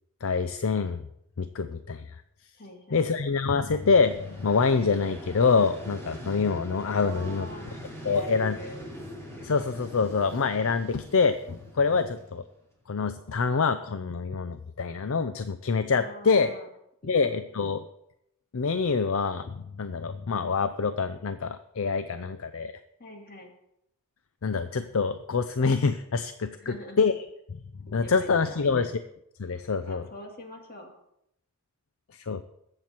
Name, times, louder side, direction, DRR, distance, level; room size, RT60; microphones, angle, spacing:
voice 1, 0.2-1.0 1.4-2.2 2.9-7.8 8.0-8.6 9.4-12.4 12.9-16.5 17.1-17.8 18.5-22.7 24.4-27.3 27.9-29.0 29.4-30.1 32.3-32.4, left 5 dB, 60° left, 11 dB, 0.5 m, -26 dB
voice 2, 2.5-3.3 6.9-7.7 8.0-8.9 11.9-12.1 15.9-16.7 17.0-17.3 23.0-23.5 26.6-27.0 28.0-28.9 29.8-30.9, left 1 dB, 40° left, 2 dB, 2.3 m, -44 dB
Vehicle, 3.7-12.6, equal, 10° left, 2.6 m, -43 dB
21.0 x 7.8 x 4.4 m, 0.80 s
head